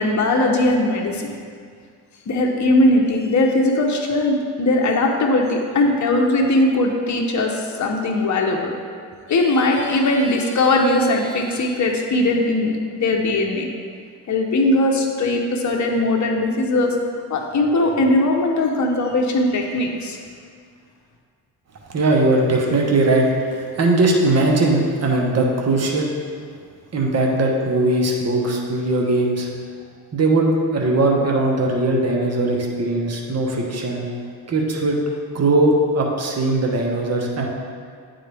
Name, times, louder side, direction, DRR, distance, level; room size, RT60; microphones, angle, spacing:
voice 1, 0.0-1.3 2.3-8.7 9.3-13.7 14.3-17.0 17.3-20.2, left 2 dB, 45° left, 1 dB, 0.9 m, -19 dB
voice 2, 21.9-26.1 26.9-29.5 30.1-34.0 34.5-35.0 35.3-37.5, right 2 dB, 40° right, -1 dB, 1.1 m, -19 dB
9.2 x 3.9 x 3.4 m, 2.1 s
cardioid pair, 75°, 41 cm